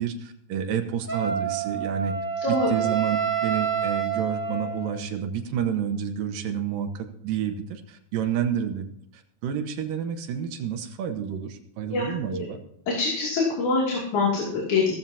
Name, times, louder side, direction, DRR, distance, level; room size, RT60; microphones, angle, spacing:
voice 1, 0.0-2.1 2.5-12.6, right 8 dB, 80° right, 7 dB, 2.7 m, -29 dB
Wind instrument woodwind instrument, 1.1-5.1, right 7 dB, 10° left, 1.0 m, -28 dB
voice 2, 11.9-12.4 12.9-14.9, left 3 dB, 60° left, -3 dB, 4.0 m, -25 dB
16.0 x 14.5 x 2.8 m, 0.71 s
omnidirectional pair, 4.0 m